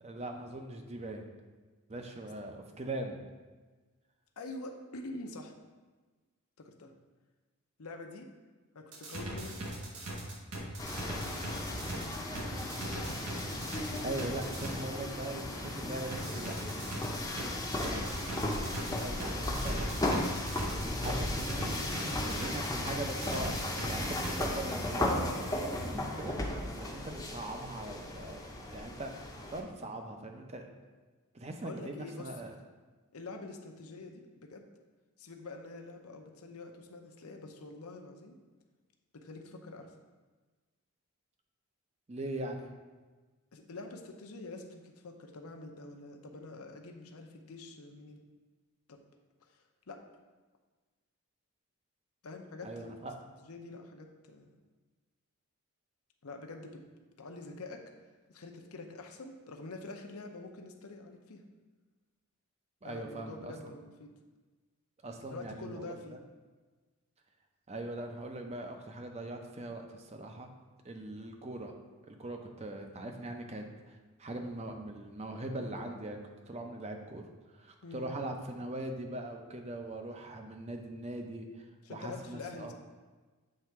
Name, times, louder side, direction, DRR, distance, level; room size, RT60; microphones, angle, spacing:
voice 1, 0.0-1.3 1.9-3.2 13.0-13.1 14.0-16.5 18.9-20.2 20.5-26.3 26.7-28.4 28.7-29.1 29.5-30.7 31.3-32.5 42.1-42.7 52.6-53.1 62.8-63.7 65.0-66.2 67.7-70.5 70.8-71.7 72.1-76.2 76.5-77.2 77.5-82.7, right 1 dB, 30° right, 4 dB, 0.6 m, -41 dB
voice 2, 4.4-5.5 6.6-6.9 7.8-8.3 8.7-9.6 9.9-10.0 31.6-32.3 33.1-34.6 35.2-38.3 39.1-39.9 43.5-48.2 48.9-49.0 49.9-50.0 52.2-53.0 53.4-54.5 56.2-56.8 57.2-57.8 58.3-61.4 62.8-64.1 65.3-66.2 77.8-78.1 81.8-82.7, left 2 dB, 75° left, 4 dB, 0.7 m, -46 dB
sound 1, 8.9-14.7 16.1-24.3, right 1 dB, 85° right, 1.1 m, -40 dB
sound 2, 10.8-29.6, left 1 dB, 15° left, 0.7 m, -35 dB
7.6 x 3.4 x 4.6 m, 1.3 s
head